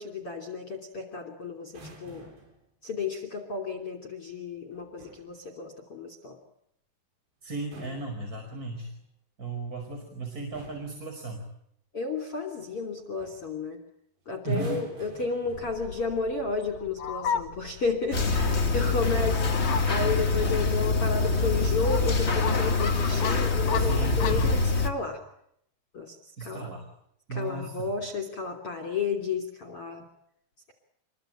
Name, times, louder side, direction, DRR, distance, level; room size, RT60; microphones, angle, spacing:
voice 1, 0.0-1.7 2.0-2.2 2.8-6.4 11.9-13.8 14.3-25.2 25.9-26.7 27.3-30.0, left 4 dB, 35° left, 4 dB, 3.5 m, -32 dB
sound 1, 1.6-2.6 4.7-5.3 7.5-8.9 9.9-10.1 10.5-11.0 12.7-12.9 13.2-13.5 14.4-16.1 17.0-17.3, right 2 dB, 75° right, 9.3 m, -48 dB
voice 2, 7.4-8.9 9.4-11.4 14.4-14.9 23.8-24.6 26.4-26.9 27.3-28.0, right 3 dB, 20° right, 3 dB, 5.0 m, -35 dB
Fowl, 15.5-24.6, left 7 dB, 50° left, 3.1 m, -36 dB
sound 2, 18.1-24.9, left 3 dB, 70° left, 0.6 m, -25 dB
28.0 x 23.0 x 9.0 m, 0.74 s
omnidirectional pair, 5.0 m